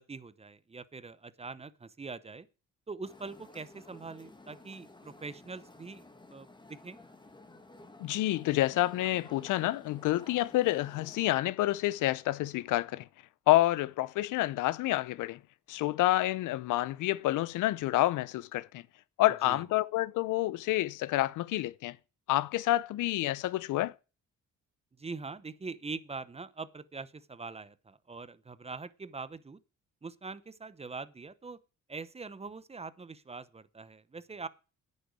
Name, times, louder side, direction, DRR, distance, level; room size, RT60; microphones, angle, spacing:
voice 1, 0.0-2.5 2.9-7.0 19.4-19.6 25.0-29.6 30.0-31.6 31.9-34.5, right 4 dB, 20° right, 0.7 m, -43 dB
sound 1, 3.0-11.4, left 2 dB, 15° left, 1.6 m, -53 dB
voice 2, 8.0-13.1 13.5-15.4 15.7-18.8 19.2-22.0 22.3-23.9, left 16 dB, 85° left, 0.6 m, -28 dB
9.9 x 6.5 x 8.2 m
cardioid pair, 90°, 30 cm